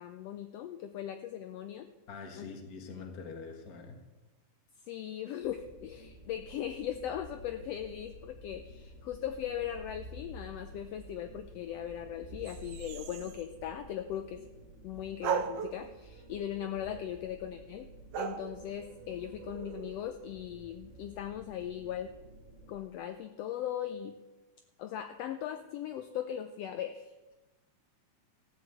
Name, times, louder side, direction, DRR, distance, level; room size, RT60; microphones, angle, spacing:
voice 1, 0.0-1.9 2.4-2.5 4.9-14.4 14.8-17.9 18.2-22.2 22.7-24.2 24.8-27.3, left 10 dB, 75° left, 8 dB, 1.5 m, -39 dB
voice 2, 2.1-4.0, left 5 dB, 40° left, 4 dB, 1.6 m, -44 dB
sound 1, 5.4-22.7, right 1 dB, 55° right, 0.8 m, -51 dB
sound 2, 12.5-13.5 15.2-17.1 18.1-20.4, right 8 dB, 70° right, 1.6 m, -39 dB
14.5 x 6.8 x 7.9 m, 1.1 s
omnidirectional pair, 3.3 m